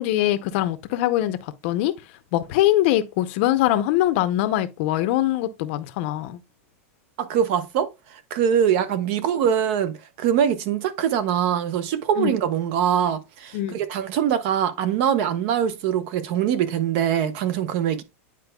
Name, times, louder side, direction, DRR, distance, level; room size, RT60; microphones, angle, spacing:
voice 1, 0.0-1.4 1.6-1.9 2.3-6.4 12.2-12.3 13.5-13.7, left 14 dB, 50° left, 0.7 m, -22 dB
voice 2, 7.2-7.9 8.3-18.0, right 9 dB, 50° right, 0.9 m, -23 dB
9.8 x 4.5 x 2.3 m
supercardioid pair, 155°, 8 cm